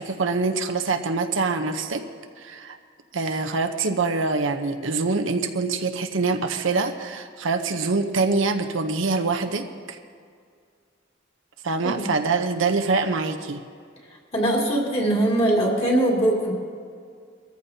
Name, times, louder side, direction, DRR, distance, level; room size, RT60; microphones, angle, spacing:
voice 1, 0.0-2.0 2.4-2.8 3.1-10.0 11.6-13.6, right 3 dB, 70° right, 6 dB, 0.8 m, -25 dB
voice 2, 14.3-16.5, right 1 dB, 30° left, -2 dB, 2.5 m, -21 dB
22.0 x 14.0 x 2.8 m, 2.2 s
head